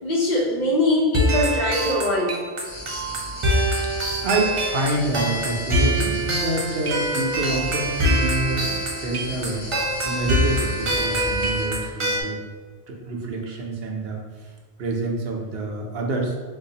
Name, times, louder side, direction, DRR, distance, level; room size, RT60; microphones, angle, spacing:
voice 1, 0.0-2.4, left 1 dB, 50° left, -3 dB, 0.7 m, -22 dB
sound 1, 1.1-12.2, equal, 40° right, 0.5 m, -24 dB
sound 2, 2.6-11.6, left 1 dB, 85° left, 1.4 m, -36 dB
voice 2, 4.2-9.7 10.0-12.4 12.9-14.2 14.8-16.3, right 2 dB, 75° right, 0 dB, 0.8 m, -27 dB
3.9 x 2.5 x 2.7 m, 1.4 s
omnidirectional pair, 1.0 m